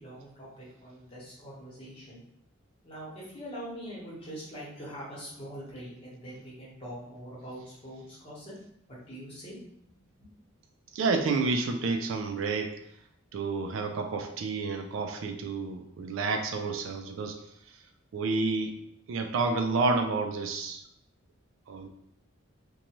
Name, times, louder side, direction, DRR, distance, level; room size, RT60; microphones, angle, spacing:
voice 1, 0.0-2.2 2.8-8.5 8.9-9.6 10.2-10.3, equal, 25° left, -8 dB, 1.0 m, -43 dB
voice 2, 10.9-12.7 13.3-17.4 18.1-18.8 19.1-20.8 21.7-21.9, right 3 dB, 70° right, 5 dB, 0.3 m, -29 dB
2.6 x 2.2 x 2.9 m, 0.75 s
head